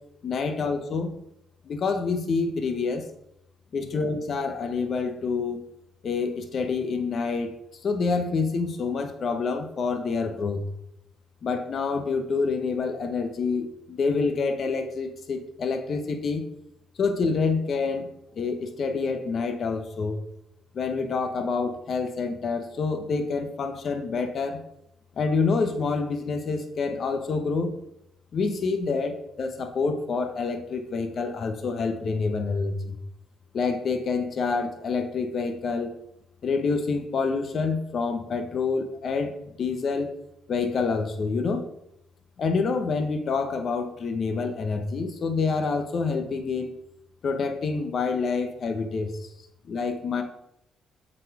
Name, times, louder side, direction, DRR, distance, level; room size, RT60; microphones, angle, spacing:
voice 1, 0.2-1.2 1.7-3.1 3.7-5.6 6.0-7.5 7.8-10.6 11.4-16.5 17.0-18.1 18.4-20.2 20.7-24.6 25.2-27.8 28.3-33.0 33.5-35.9 36.4-39.3 39.6-40.1 40.5-41.6 42.4-46.7 47.2-49.1 49.7-50.2, left 4 dB, 55° left, 6 dB, 1.0 m, -27 dB
7.5 x 4.3 x 4.8 m, 0.81 s
cardioid pair, 90°, 0 cm